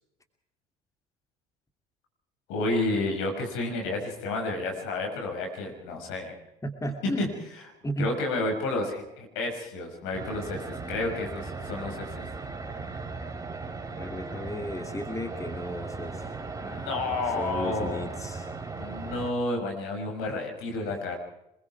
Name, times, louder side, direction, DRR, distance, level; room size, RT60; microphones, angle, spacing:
voice 1, 2.5-6.3 7.0-7.3 8.0-12.3 16.6-18.1 18.7-21.2, left 2 dB, 70° left, 3 dB, 6.2 m, -31 dB
voice 2, 6.6-7.3 7.8-8.1 13.9-16.3 17.3-18.5 20.9-21.0, equal, 15° left, 6 dB, 2.7 m, -34 dB
sound 1, 10.1-19.3, right 4 dB, 15° right, 3.9 m, -37 dB
25.5 x 22.5 x 4.8 m, 0.86 s
hypercardioid pair, 60°, 21 cm